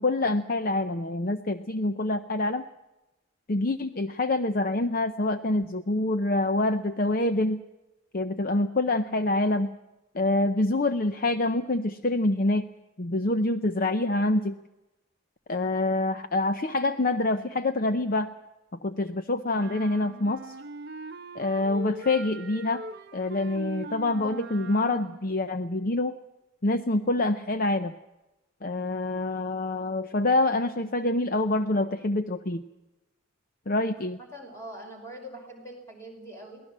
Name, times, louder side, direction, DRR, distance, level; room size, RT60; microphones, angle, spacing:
voice 1, 0.0-2.6 3.5-7.6 8.1-9.7 10.1-12.7 13.0-14.6 15.5-18.3 18.8-20.6 21.3-22.8 23.1-26.1 26.6-28.0 28.6-32.6 33.7-34.2, left 2 dB, 40° left, 10 dB, 0.7 m, -26 dB
sound 1, 19.5-25.3, right 2 dB, 45° right, 0.8 m, -41 dB
voice 2, 34.2-36.6, right 1 dB, 15° left, 2 dB, 5.4 m, -43 dB
23.5 x 17.5 x 7.4 m, 1.0 s
head